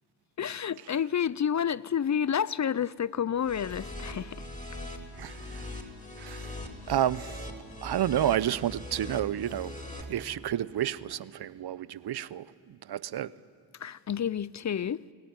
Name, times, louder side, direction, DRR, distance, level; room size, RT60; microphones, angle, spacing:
voice 1, 0.4-4.5 13.8-15.0, left 8 dB, 40° left, 0.7 m, -29 dB
sound 1, 3.4-10.0, left 1 dB, 15° left, 6.7 m, -41 dB
sound 2, 3.7-4.6 4.9-5.5 6.3-7.7 8.3-8.7 9.5-10.5, right 7 dB, 85° right, 2.6 m, -61 dB
voice 2, 5.2-5.7 6.2-6.6 6.9-7.4 7.8-9.7 10.1-13.3, right 11 dB, 60° right, 0.9 m, -30 dB
29.5 x 18.0 x 9.6 m
supercardioid pair, 45°, 44 cm